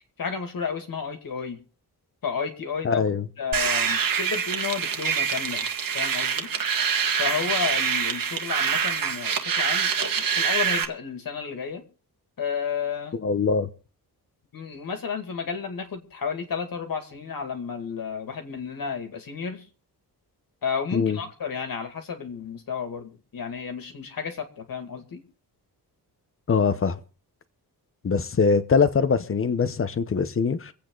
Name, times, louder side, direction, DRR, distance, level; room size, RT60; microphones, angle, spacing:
voice 1, 0.2-1.6 2.2-3.1 3.4-5.7 5.9-6.5 7.2-11.8 12.4-13.2 14.5-19.6 20.6-25.2, left 6 dB, 60° left, 2.3 m, -32 dB
voice 2, 2.8-3.2 13.2-13.7 20.9-21.2 26.5-27.0 28.0-30.7, left 5 dB, 35° left, 0.9 m, -22 dB
sound 1, 3.5-10.8, right 7 dB, 55° right, 1.7 m, -25 dB
25.0 x 8.6 x 3.9 m
wide cardioid pair, 170°, 39 cm